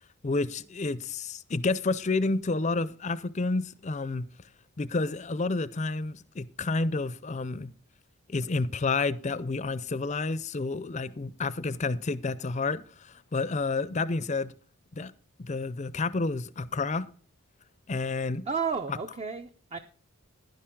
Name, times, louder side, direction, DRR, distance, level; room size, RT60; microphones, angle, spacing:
voice 1, 0.2-4.3 4.8-7.7 8.3-14.5 14.9-15.1 15.4-17.1 17.9-18.4, left 3 dB, 30° left, 0.5 m, -30 dB
voice 2, 18.5-19.8, right 5 dB, 30° right, 0.5 m, -32 dB
11.0 x 10.5 x 3.7 m
head